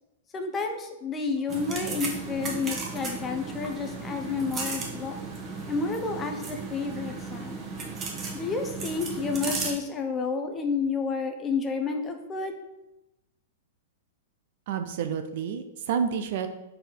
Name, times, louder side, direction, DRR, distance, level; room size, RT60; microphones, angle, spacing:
voice 1, 0.3-5.2 5.7-7.5 8.3-12.5, left 4 dB, 25° left, 5 dB, 0.8 m, -30 dB
sound 1, 1.5-9.7, right 4 dB, 30° right, 1.1 m, -35 dB
voice 2, 14.7-16.5, right 7 dB, 60° right, 8 dB, 0.6 m, -29 dB
4.3 x 4.3 x 5.1 m, 0.96 s
hypercardioid pair, 115°, 0 cm